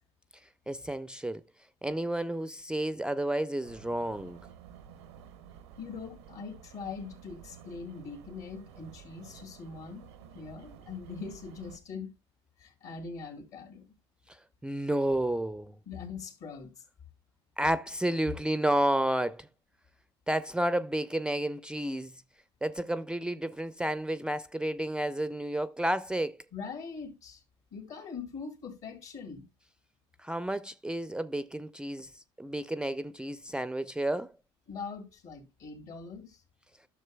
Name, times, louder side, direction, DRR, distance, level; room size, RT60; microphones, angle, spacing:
voice 1, 0.7-1.4 1.8-4.4 14.6-15.7 17.6-19.5 20.3-22.1 22.6-26.4 30.2-32.1 32.4-34.3, right 1 dB, 5° right, 0.4 m, -31 dB
sound 1, 3.6-11.8, right 8 dB, 85° right, 0.7 m, -52 dB
voice 2, 5.8-12.1 12.6-13.9 15.9-16.8 26.5-27.4 27.7-29.4 34.7-36.4, left 5 dB, 65° left, 2.5 m, -42 dB
12.0 x 6.5 x 2.2 m
hypercardioid pair, 70°, 13 cm